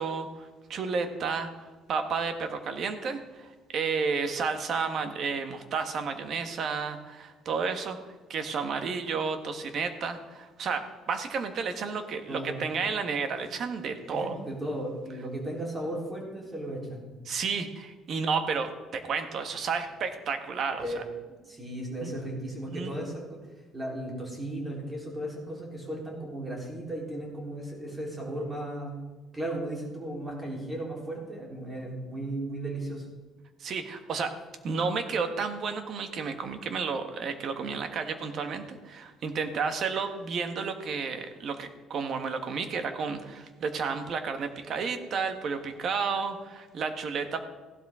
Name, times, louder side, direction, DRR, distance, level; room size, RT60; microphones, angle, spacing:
voice 1, 0.0-8.0 8.3-14.3 17.2-21.0 22.0-22.1 22.7-22.9 33.6-34.3 34.6-47.4, right 5 dB, 45° right, 7 dB, 1.3 m, -32 dB
voice 2, 12.3-12.6 14.0-17.1 20.8-21.0 21.4-23.4 23.7-29.0 29.3-33.1, right 1 dB, 15° right, -2 dB, 3.6 m, -35 dB
15.5 x 12.0 x 3.7 m, 1.3 s
cardioid pair, 145°, 0 cm